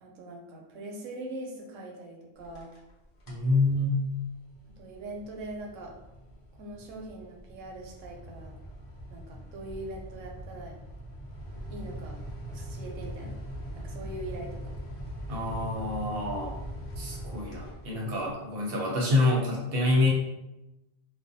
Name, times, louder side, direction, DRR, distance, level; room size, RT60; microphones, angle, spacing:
voice 1, 0.0-2.7 4.8-5.9 6.6-8.5 9.1-10.7 11.7-12.2 12.5-13.3 13.8-14.6, right 1 dB, 90° right, 0 dB, 1.0 m, -41 dB
sound 1, 2.4-2.9 3.2-3.5 4.0-18.3, equal, 55° left, 0.7 m, -41 dB
voice 2, 3.3-3.9 15.3-16.5 17.0-20.1, left 2 dB, 60° right, -2 dB, 0.7 m, -27 dB
2.4 x 2.1 x 2.5 m, 0.98 s
omnidirectional pair, 1.3 m